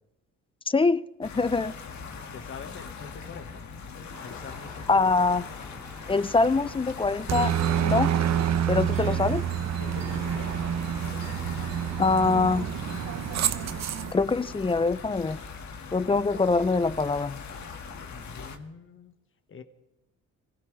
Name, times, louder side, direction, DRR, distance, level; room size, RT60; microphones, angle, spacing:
voice 1, 0.7-1.7 4.9-5.4 6.1-7.5 7.8-8.1 8.7-9.4 12.0-12.7 14.1-15.4 15.9-17.4, left 3 dB, 20° left, 17 dB, 0.5 m, -24 dB
sound 1, 1.2-18.6, left 5 dB, 65° left, 1.9 m, -41 dB
voice 2, 2.3-3.7 4.2-5.1 8.9-9.2 9.8-10.6 18.1-19.1 19.5-19.6, left 5 dB, 45° left, 8 dB, 1.5 m, -44 dB
sound 2, 4.1-12.7, right 1 dB, ahead, 4.2 m, -49 dB
Aircraft, 7.3-14.1, right 9 dB, 60° right, 0.9 m, -28 dB
25.0 x 17.0 x 3.3 m, 0.99 s
cardioid pair, 90°, 30 cm